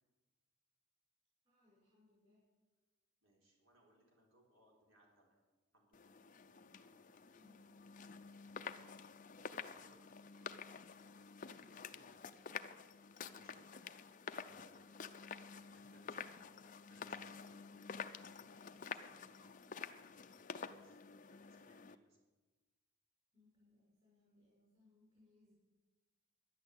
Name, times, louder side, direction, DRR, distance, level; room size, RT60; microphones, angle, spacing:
voice 1, 1.4-2.4 7.3-7.6 23.3-25.5, left 2 dB, 30° right, -7 dB, 6.0 m, -71 dB
voice 2, 3.2-5.5 5.7-6.2 6.7-7.3 8.4-9.1 9.4-10.7 11.4-12.2 13.3-13.6 14.3-16.3 16.9-17.6 17.9-21.0 21.3-22.2, right 1 dB, 70° right, -1 dB, 3.9 m, -71 dB
sound 1, 5.9-21.9, left 6 dB, 35° left, 0.5 m, -50 dB
11.5 x 11.0 x 8.2 m, 1.2 s
head